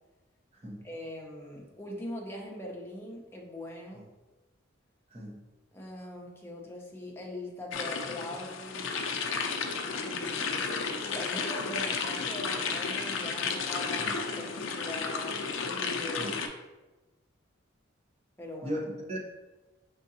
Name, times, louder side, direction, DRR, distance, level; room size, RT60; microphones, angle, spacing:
voice 1, 0.8-4.0 5.7-9.1 10.0-16.4 18.4-18.8, left 1 dB, 10° left, -2 dB, 0.7 m, -42 dB
voice 2, 5.1-5.4 14.0-14.2 16.1-16.4 18.6-19.2, equal, 30° right, -2 dB, 0.8 m, -37 dB
sound 1, 7.7-16.5, left 5 dB, 75° left, 0.5 m, -33 dB
5.1 x 3.6 x 2.8 m, 1.1 s
head